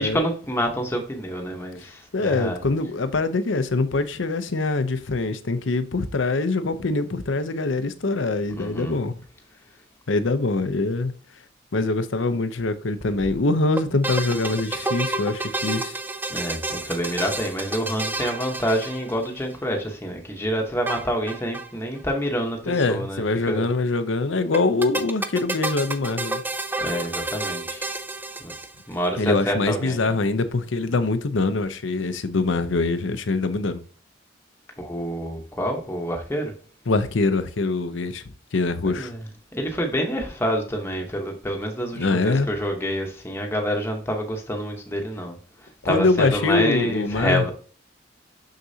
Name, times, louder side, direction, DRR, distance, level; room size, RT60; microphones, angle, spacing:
voice 1, 0.0-2.6 8.5-8.9 16.3-23.7 26.8-27.9 28.4-28.5 28.9-30.0 34.8-36.5 38.8-39.2 39.5-45.4 45.8-47.5, equal, 10° left, 1.0 m, -27 dB
voice 2, 2.1-9.2 10.1-11.1 11.7-16.0 22.7-26.4 29.2-33.8 36.9-39.1 42.0-42.5 45.8-47.5, left 3 dB, 75° left, 0.7 m, -24 dB
sound 1, 13.8-19.5 20.9-21.7 22.0-22.1 22.2-22.3 24.5-29.1, right 2 dB, 10° right, 0.4 m, -30 dB
6.5 x 6.0 x 2.8 m
head